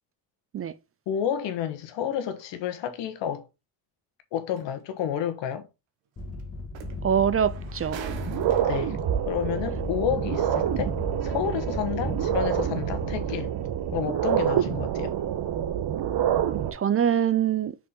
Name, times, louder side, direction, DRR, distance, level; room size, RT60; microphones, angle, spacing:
voice 1, 1.1-3.5 4.3-5.7 8.6-9.0 9.3-13.5 13.9-15.1, left 9 dB, 75° left, 1.4 m, -30 dB
sound 1, 4.6-4.7 6.4-6.5 6.7-9.0 9.9-10.0, right 7 dB, 90° right, 1.3 m, -41 dB
sound 2, 6.2-13.2, left 2 dB, 30° left, 1.9 m, -36 dB
voice 2, 7.0-8.1 16.7-17.8, right 9 dB, 30° right, 0.5 m, -24 dB
sound 3, 7.3-7.4 7.9-16.7, right 10 dB, 60° right, 1.2 m, -27 dB
6.1 x 4.4 x 3.7 m
cardioid pair, 85°, 44 cm